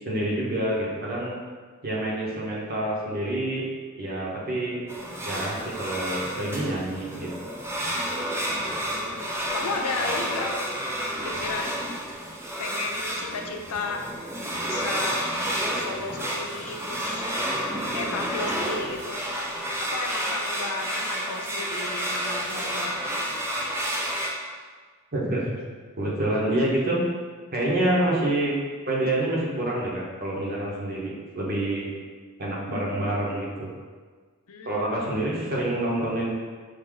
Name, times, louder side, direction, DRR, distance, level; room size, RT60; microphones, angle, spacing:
voice 1, 0.0-1.4 1.8-3.6 4.0-4.7 5.2-7.3 25.1-25.5 26.0-27.0 27.5-28.5 28.9-31.9 32.4-33.7 34.6-36.3, right 1 dB, 45° right, -4 dB, 0.9 m, -27 dB
sound 1, 4.9-24.3, equal, 10° right, 0.4 m, -30 dB
voice 2, 8.9-10.6 11.3-11.8 12.6-14.0 14.6-15.3 15.7-17.3 17.9-19.2 19.8-23.0 34.5-34.9, left 4 dB, 85° left, 3 dB, 0.5 m, -34 dB
4.9 x 2.7 x 3.7 m, 1.5 s
head